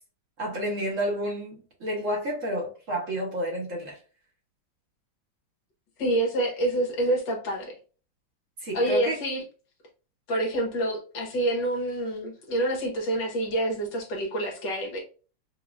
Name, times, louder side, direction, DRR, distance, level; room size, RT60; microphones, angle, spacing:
voice 1, 0.4-4.0 8.6-9.2, equal, 45° right, 1.5 m, -30 dB
voice 2, 6.0-7.7 8.7-9.4 10.3-15.0, right 1 dB, 70° left, 1.9 m, -27 dB
4.9 x 2.8 x 2.4 m
omnidirectional pair, 2.1 m